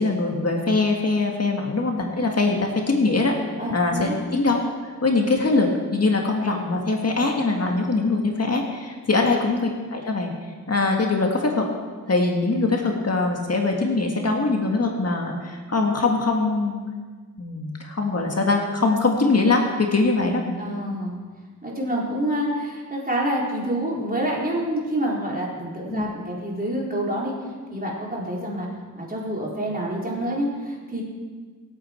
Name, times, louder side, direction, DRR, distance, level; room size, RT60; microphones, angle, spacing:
voice 1, 0.0-3.4 3.7-10.3 10.7-11.7 12.1-16.8 17.4-20.6 25.9-26.1, left 3 dB, 45° left, 1 dB, 1.8 m, -22 dB
voice 2, 3.6-4.1 9.2-9.3 20.6-21.2 21.6-27.4 27.7-28.7 29.0-31.0, right 1 dB, 25° right, -4 dB, 4.0 m, -27 dB
26.0 x 8.8 x 4.5 m, 1.5 s
wide cardioid pair, 90°, 34 cm